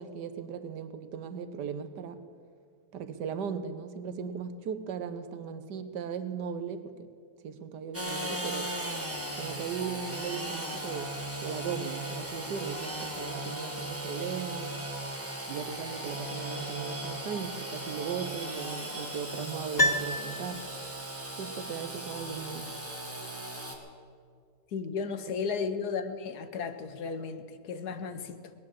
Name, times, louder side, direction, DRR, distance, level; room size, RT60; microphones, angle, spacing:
voice 1, 0.0-2.2 2.9-7.1 7.4-8.7 9.4-14.8 15.5-20.6 21.4-22.7, right 7 dB, 85° right, 10 dB, 1.5 m, -37 dB
Engine / Sawing, 7.9-23.8, right 1 dB, 10° right, 1.5 m, -37 dB
Piano, 19.8-21.0 21.3-21.4, left 1 dB, 30° left, 0.4 m, -29 dB
voice 2, 24.7-28.5, left 5 dB, 70° left, 10 dB, 1.4 m, -34 dB
19.0 x 9.9 x 7.6 m, 2.1 s
omnidirectional pair, 1.8 m